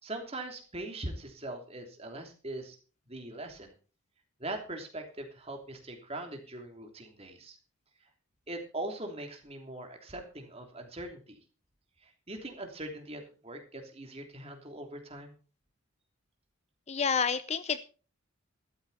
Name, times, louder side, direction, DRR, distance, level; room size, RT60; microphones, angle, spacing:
voice 1, 0.0-2.8 3.1-3.7 4.4-7.6 8.5-11.4 12.0-15.3, right 1 dB, 30° right, 3 dB, 3.1 m, -41 dB
voice 2, 16.9-17.8, left 6 dB, 30° left, 14 dB, 0.5 m, -29 dB
13.0 x 13.0 x 4.2 m, 0.37 s
head